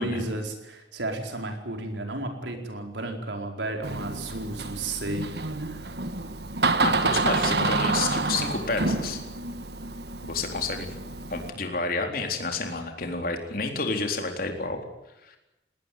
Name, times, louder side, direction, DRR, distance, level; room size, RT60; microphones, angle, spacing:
voice 1, 0.0-6.0, right 2 dB, 85° right, 3 dB, 4.7 m, -33 dB
Door, 3.8-11.5, right 3 dB, 65° right, 1.6 m, -28 dB
voice 2, 6.8-9.2 10.3-11.0 11.3-14.8 15.2-15.4, left 3 dB, 55° left, 4 dB, 3.9 m, -30 dB
19.5 x 19.5 x 9.4 m, 0.94 s
head